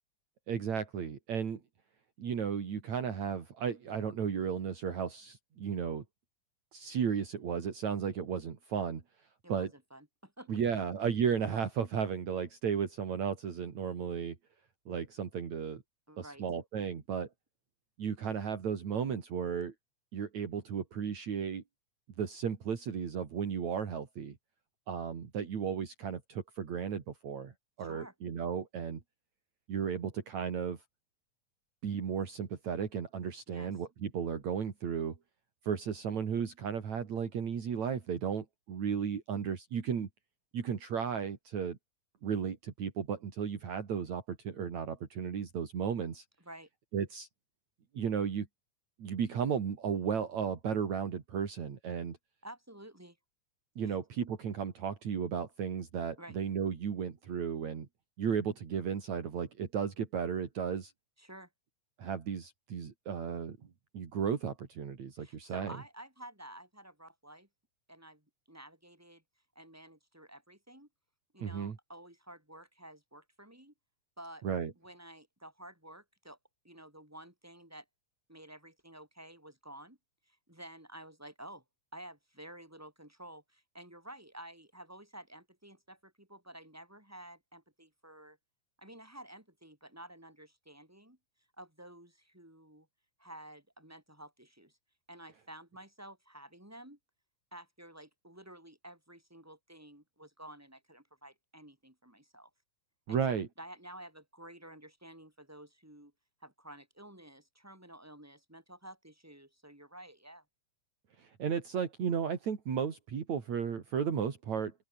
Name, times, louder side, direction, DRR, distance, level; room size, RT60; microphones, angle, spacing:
voice 1, 0.5-1.6 2.2-6.0 6.7-9.0 9.5-9.7 10.5-14.4 14.9-15.8 16.2-17.3 18.0-19.7 20.1-21.6 22.2-24.4 24.9-27.5 27.8-29.0 29.7-30.8 31.8-35.2 35.6-40.1 40.5-41.8 42.2-46.2 46.9-47.3 47.9-48.5 49.0-52.2 53.8-57.9 58.2-60.9 62.0-63.6 63.9-65.8 71.4-71.8 74.4-74.7 103.1-103.5 111.2-114.7, right 7 dB, 60° right, 4.0 m, -34 dB
voice 2, 9.4-10.6 16.1-16.4 27.8-28.1 33.5-33.7 46.4-46.7 52.4-53.2 53.8-54.0 56.2-56.4 61.2-61.5 65.2-67.5 67.9-69.2 69.5-70.9 71.3-73.7 74.2-74.4 74.8-76.4 76.6-77.8 78.3-80.0 80.3-81.6 81.9-88.4 88.8-91.2 91.6-92.9 93.2-94.7 95.1-97.0 97.5-102.5 103.1-106.1 106.4-110.4, right 1 dB, 5° right, 7.6 m, -51 dB
open air
omnidirectional pair, 3.6 m